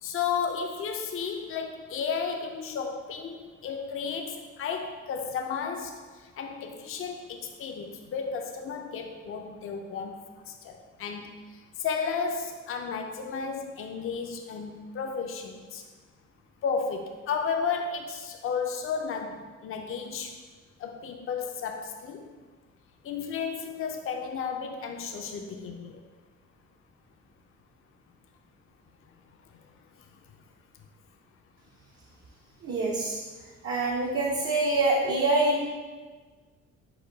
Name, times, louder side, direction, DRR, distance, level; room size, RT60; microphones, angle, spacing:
voice 1, 0.0-15.8 16.6-19.4 19.6-20.4 20.8-22.3 23.0-26.0, left 6 dB, 45° left, 3 dB, 0.5 m, -33 dB
voice 2, 32.6-33.2 33.6-35.7, right 2 dB, 50° right, -3 dB, 0.7 m, -25 dB
4.9 x 2.2 x 4.5 m, 1.4 s
cardioid pair, 90°, 30 cm